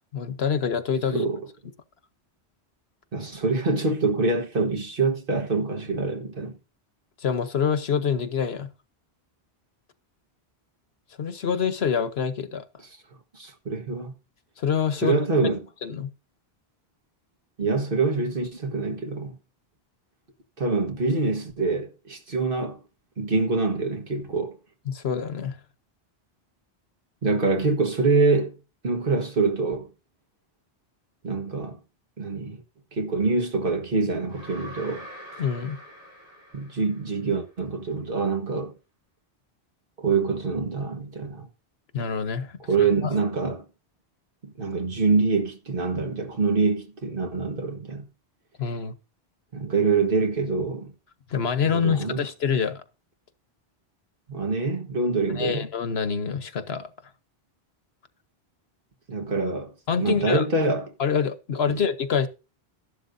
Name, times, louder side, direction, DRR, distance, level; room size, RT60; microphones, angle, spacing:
voice 1, 0.1-1.3 7.2-8.7 11.2-12.6 14.6-15.2 15.8-16.1 24.9-25.6 35.4-35.8 41.9-43.1 48.6-48.9 51.3-52.8 55.4-56.9 59.9-60.4 61.0-62.3, left 6 dB, 75° left, 1.2 m, -26 dB
voice 2, 3.1-6.5 13.3-14.1 15.0-15.6 17.6-19.3 20.6-22.8 23.2-24.6 27.2-28.6 28.8-29.9 31.2-31.8 32.2-32.6 32.9-35.1 36.5-38.7 40.0-41.5 42.7-43.6 44.4-48.1 49.5-50.9 51.6-52.3 54.3-55.7 59.1-60.9, right 3 dB, 55° right, 1.7 m, -25 dB
sound 1, 34.3-37.4, equal, 85° right, 5.5 m, -44 dB
13.5 x 11.5 x 2.7 m
omnidirectional pair, 1.1 m